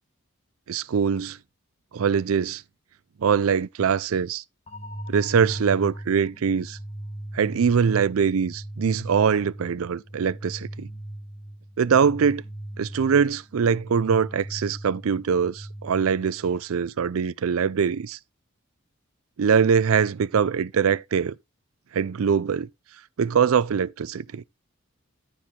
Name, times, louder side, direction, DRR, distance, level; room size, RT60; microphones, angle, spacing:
voice 1, 0.7-1.4 1.9-2.6 3.2-4.4 5.1-6.8 7.3-10.9 11.8-12.4 12.8-18.2 19.4-21.4 21.9-22.7 23.2-24.4, right 6 dB, 80° right, 0.4 m, -23 dB
sound 1, 4.7-16.6, right 1 dB, 30° left, 1.2 m, -39 dB
14.0 x 4.7 x 3.7 m
head